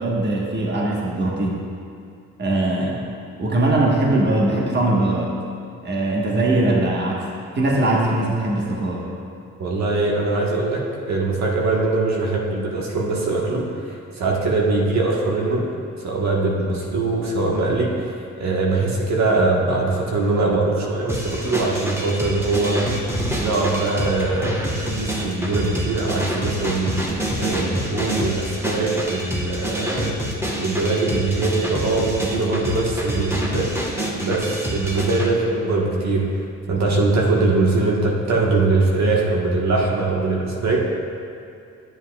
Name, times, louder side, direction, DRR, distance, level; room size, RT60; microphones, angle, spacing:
voice 1, 0.0-1.6 2.4-3.1 3.4-5.4 5.8-7.2 7.5-9.1, right 2 dB, 35° right, -2 dB, 1.3 m, -21 dB
voice 2, 9.6-15.6 16.0-30.2 30.6-33.7 34.1-40.8, right 3 dB, 60° right, -2 dB, 1.3 m, -22 dB
sound 1, 21.1-35.3, equal, 10° right, 1.2 m, -27 dB
12.5 x 7.7 x 2.3 m, 2.5 s
cardioid pair, 90°, 30 cm